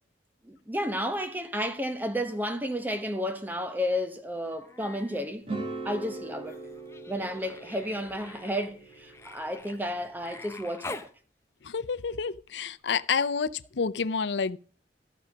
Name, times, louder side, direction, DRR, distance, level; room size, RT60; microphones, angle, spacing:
voice 1, 0.4-5.4 5.8-6.6 7.1-11.1, equal, 10° right, 0.9 m, -32 dB
Human voice, 4.4-5.2 5.5-11.1 12.7-12.8, left 3 dB, 15° left, 0.6 m, -46 dB
sound 1, 5.4-10.6, right 3 dB, 30° right, 2.6 m, -41 dB
voice 2, 11.6-14.6, left 5 dB, 80° left, 0.5 m, -29 dB
14.0 x 6.4 x 5.1 m
head